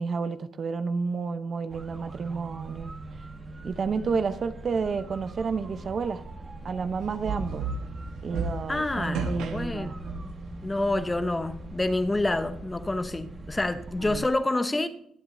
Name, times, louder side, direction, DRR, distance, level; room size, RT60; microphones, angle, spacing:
voice 1, 0.0-2.9 3.6-6.2 6.6-7.6 8.2-10.0 14.0-14.3, right 5 dB, 45° right, 0.8 m, -30 dB
sound 1, 1.7-14.3, right 2 dB, 30° right, 1.6 m, -41 dB
sound 2, 7.0-10.5, right 4 dB, 85° right, 1.3 m, -34 dB
voice 2, 8.7-9.9 10.2-10.3 10.6-14.9, left 2 dB, 15° left, 0.9 m, -28 dB
22.0 x 8.0 x 2.7 m
cardioid pair, 90°, 0 cm